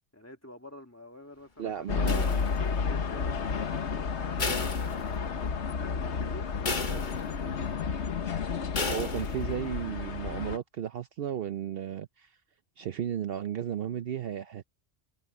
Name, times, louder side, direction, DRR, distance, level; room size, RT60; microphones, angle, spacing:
voice 1, 0.1-1.9 2.7-5.0 5.8-6.5, left 1 dB, 15° left, 1.8 m, -48 dB
voice 2, 1.6-2.4 4.4-4.6 6.8-7.0 8.9-12.3 12.8-14.7, right 9 dB, 60° right, 0.8 m, -34 dB
sound 1, 1.9-10.6, left 5 dB, 80° left, 1.4 m, -31 dB
sound 2, 2.1-2.9 4.4-5.5 5.9-6.0 6.7-7.5 8.7-9.5, left 3 dB, 45° left, 1.8 m, -34 dB
omnidirectional pair, 1.2 m